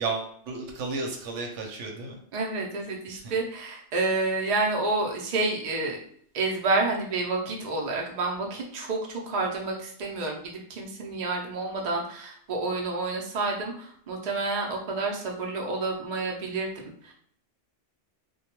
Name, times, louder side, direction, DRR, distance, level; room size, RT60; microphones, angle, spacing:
voice 1, 0.0-2.2 3.1-3.3, right 3 dB, 90° right, 2 dB, 0.9 m, -33 dB
voice 2, 2.3-6.0 6.3-17.1, right 3 dB, 50° right, 0 dB, 0.5 m, -29 dB
2.2 x 2.2 x 2.9 m, 0.63 s
omnidirectional pair, 1.2 m